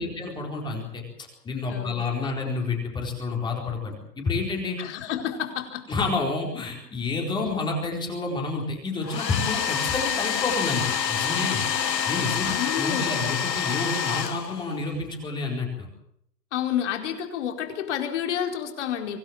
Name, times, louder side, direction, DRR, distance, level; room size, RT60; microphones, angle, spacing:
voice 1, 0.0-4.8 5.9-11.6 12.1-15.9, left 3 dB, 10° left, 0 dB, 4.4 m, -29 dB
voice 2, 1.7-2.3 4.8-5.9 12.4-13.2 16.5-19.2, left 9 dB, 45° left, 4 dB, 4.8 m, -30 dB
Domestic sounds home sounds, 9.0-14.9, left 8 dB, 90° left, 2.0 m, -27 dB
25.0 x 18.0 x 7.5 m, 0.72 s
hypercardioid pair, 155°, 48 cm